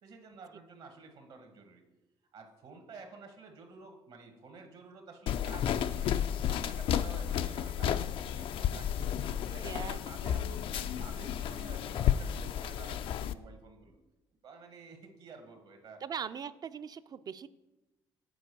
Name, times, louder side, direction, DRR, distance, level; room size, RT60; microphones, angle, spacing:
voice 1, 0.0-1.8 2.3-9.1 9.5-14.0 14.4-16.0, right 4 dB, 70° right, 4 dB, 1.5 m, -51 dB
sound 1, 5.3-13.3, left 9 dB, 65° left, 0.4 m, -32 dB
voice 2, 9.3-10.5 16.0-17.5, right 7 dB, 40° right, 13 dB, 0.4 m, -41 dB
6.9 x 4.5 x 6.7 m, 1.0 s
supercardioid pair, 75°, 10 cm